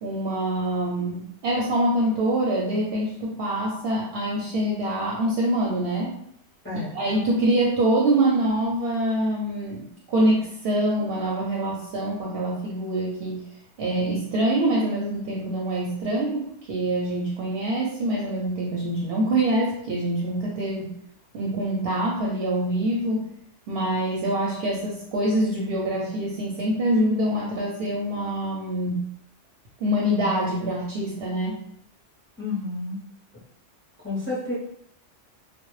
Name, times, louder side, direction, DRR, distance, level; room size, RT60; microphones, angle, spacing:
voice 1, 0.0-6.2 6.9-13.4 13.8-20.9 21.3-23.3 23.7-29.0 29.8-31.6, right 1 dB, 65° right, -2 dB, 0.7 m, -25 dB
voice 2, 6.6-7.0 32.4-33.0 34.0-34.5, left 3 dB, 15° left, -7 dB, 0.4 m, -30 dB
2.1 x 2.0 x 3.0 m, 0.70 s
omnidirectional pair, 1.2 m